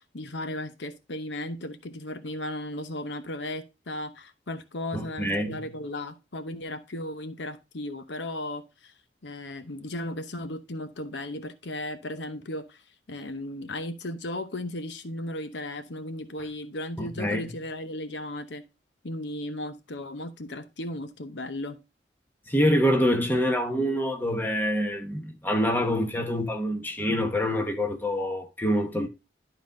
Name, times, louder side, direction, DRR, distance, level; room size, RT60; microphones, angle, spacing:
voice 1, 0.0-8.9 9.2-12.8 13.1-18.6 19.0-21.8, left 1 dB, 90° left, 0.9 m, -36 dB
voice 2, 4.9-5.6 17.0-17.5 22.5-29.1, equal, 10° left, 1.1 m, -26 dB
11.5 x 4.0 x 3.8 m
head